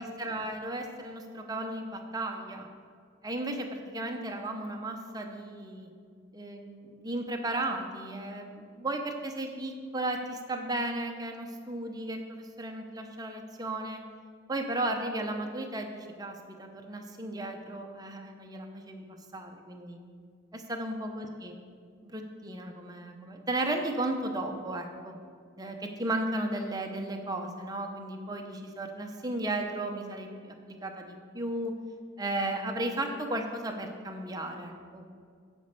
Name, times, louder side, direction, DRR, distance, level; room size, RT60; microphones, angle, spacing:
voice 1, 0.0-2.7 3.2-5.9 6.3-14.0 14.5-20.0 20.5-21.6 22.0-25.1 25.6-31.7 32.2-35.1, right 1 dB, 20° right, 3 dB, 0.8 m, -35 dB
10.0 x 5.2 x 6.7 m, 2.2 s
head